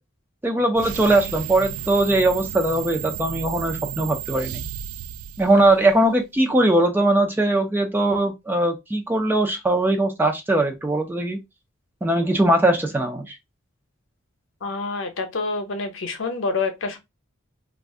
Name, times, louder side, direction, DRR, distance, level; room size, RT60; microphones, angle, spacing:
voice 1, 0.4-4.6 5.4-11.4 12.0-13.4, right 1 dB, 10° right, 0.3 m, -20 dB
sound 1, 0.7-6.2, right 9 dB, 85° right, 0.3 m, -33 dB
voice 2, 14.6-17.0, left 3 dB, 70° left, 0.7 m, -27 dB
2.4 x 2.4 x 3.5 m
head